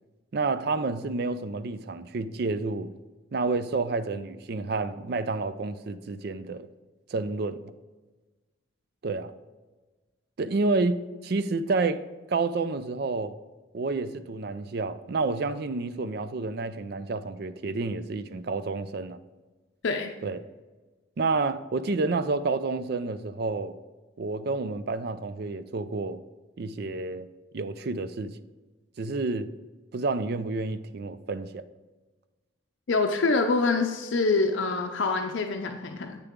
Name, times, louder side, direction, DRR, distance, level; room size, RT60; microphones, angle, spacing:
voice 1, 0.3-2.9 3.3-6.7 7.1-7.6 9.0-9.3 10.4-12.0 12.3-13.3 13.7-19.2 20.2-20.4 21.2-23.8 24.2-26.2 26.6-27.3 27.5-28.3 29.0-29.5 29.9-31.6, right 3 dB, 50° right, 0.4 m, -29 dB
voice 2, 32.9-36.2, left 3 dB, 65° left, 0.5 m, -25 dB
8.2 x 6.7 x 3.6 m
head